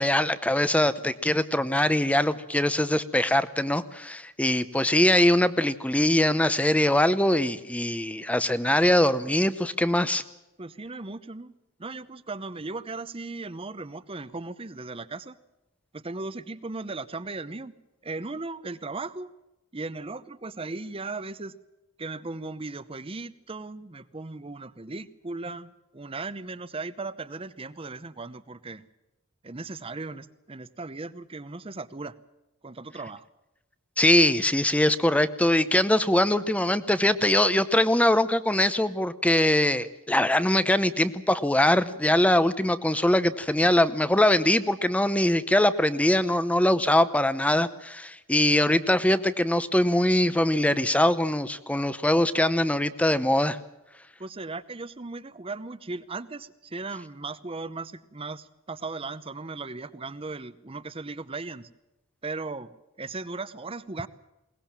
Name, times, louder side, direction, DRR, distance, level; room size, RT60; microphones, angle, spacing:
voice 1, 0.0-10.2 34.0-53.6, left 1 dB, 5° left, 14 dB, 0.7 m, -22 dB
voice 2, 10.6-11.5 11.8-15.4 15.9-17.7 18.0-19.3 19.7-21.6 22.0-28.8 29.4-32.2 32.6-33.2 54.2-61.7 62.2-62.7 63.0-64.1, right 3 dB, 25° right, 15 dB, 0.8 m, -37 dB
22.0 x 19.0 x 7.4 m, 0.98 s
head